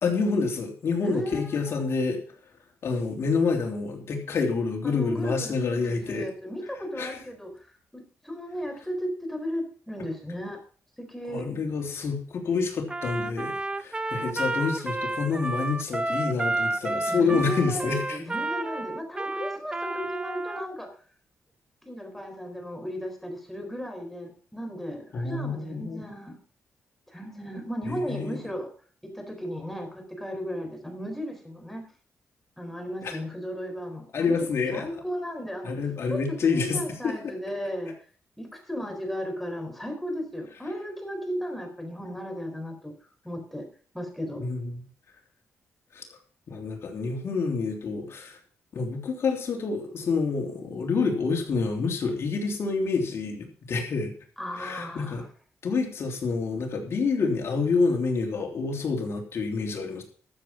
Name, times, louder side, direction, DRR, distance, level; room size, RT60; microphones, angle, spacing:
voice 1, 0.0-2.2 2.8-6.3 7.0-7.2 11.3-18.2 25.1-26.0 27.9-28.4 33.0-33.1 34.1-34.9 35.6-37.3 44.4-44.7 45.9-46.0 46.5-48.4 48.7-54.1 54.6-55.2 55.6-60.0, left 4 dB, 65° left, 2 dB, 3.3 m, -28 dB
voice 2, 1.0-1.8 4.8-10.6 11.0-11.5 17.1-21.0 21.8-26.4 27.1-28.7 29.1-31.9 32.6-34.3 34.7-35.8 36.1-38.0 38.4-42.9 43.2-43.7 43.9-44.5 54.4-55.3, equal, 5° left, 4 dB, 4.3 m, -35 dB
Trumpet, 12.9-20.7, right 2 dB, 20° right, 0.8 m, -31 dB
13.0 x 7.7 x 5.8 m, 0.42 s
cardioid pair, 90°, 5 cm